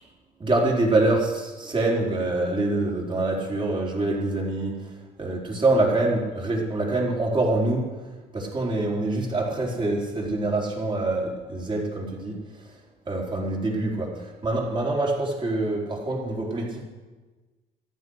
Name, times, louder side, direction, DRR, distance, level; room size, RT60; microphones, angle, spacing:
voice 1, 0.4-4.7 5.2-7.9 8.3-12.4 13.1-16.8, right 2 dB, 30° right, -2 dB, 4.2 m, -25 dB
14.0 x 12.0 x 6.4 m, 1.3 s
cardioid pair, 110°, 17 cm